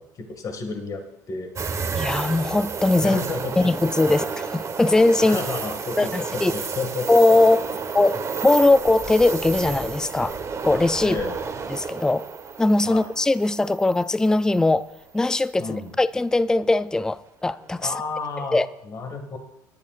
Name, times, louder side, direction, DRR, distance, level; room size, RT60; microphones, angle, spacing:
voice 1, 0.0-1.5 3.0-3.7 4.1-4.3 5.2-7.1 11.0-11.5 12.8-13.1 15.6-15.9 17.8-18.6 18.8-19.4, left 4 dB, 40° left, 2.1 m, -31 dB
sound 1, 1.6-14.6 15.0-15.1 17.5-17.9, right 5 dB, 35° right, 1.3 m, -31 dB
voice 2, 2.0-3.2 3.6-5.4 6.0-6.5 7.1-10.4 10.6-11.2 11.7-12.3 12.6-14.9 15.1-17.9 18.5-18.7, left 2 dB, 5° left, 0.4 m, -20 dB
20.0 x 10.5 x 2.5 m
hypercardioid pair, 75°, 9 cm